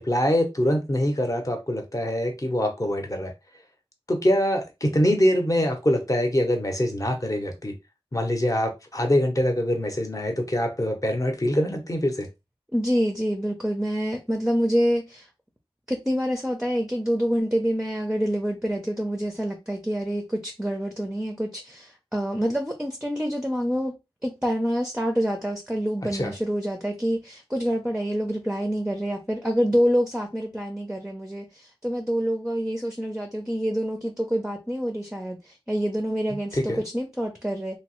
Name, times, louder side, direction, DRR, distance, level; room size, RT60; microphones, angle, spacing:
voice 1, 0.0-3.3 4.1-7.7 8.1-12.3 26.1-26.3 36.3-36.8, equal, 35° left, 0.8 m, -24 dB
voice 2, 12.7-15.3 15.9-24.0 24.2-37.8, equal, 5° right, 0.5 m, -27 dB
3.0 x 2.0 x 3.0 m
wide cardioid pair, 60°, 10 cm